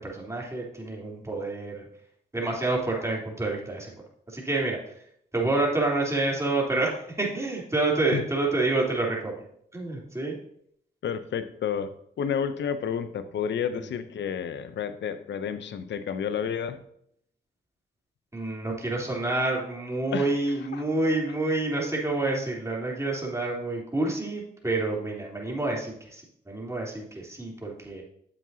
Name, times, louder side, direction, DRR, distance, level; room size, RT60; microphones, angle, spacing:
voice 1, 0.0-1.8 2.3-3.9 4.3-4.8 5.3-9.4 9.7-10.3 18.3-28.0, right 2 dB, 15° right, -2 dB, 3.4 m, -28 dB
voice 2, 11.0-16.8 20.1-20.3 20.6-20.8, left 7 dB, 75° left, 12 dB, 0.7 m, -30 dB
9.6 x 7.4 x 2.8 m, 0.68 s
supercardioid pair, 50°, 19 cm